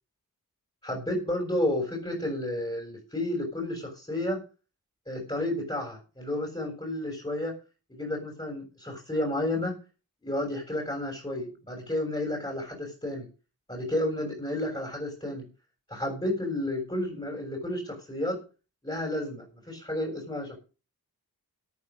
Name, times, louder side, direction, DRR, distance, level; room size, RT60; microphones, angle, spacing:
voice 1, 0.8-4.4 5.1-7.5 7.9-9.7 10.2-13.2 13.7-15.4 15.9-18.4 18.8-20.6, left 1 dB, 15° left, 0 dB, 6.9 m, -31 dB
14.0 x 9.8 x 5.4 m, 0.33 s
wide cardioid pair, 60°, 37 cm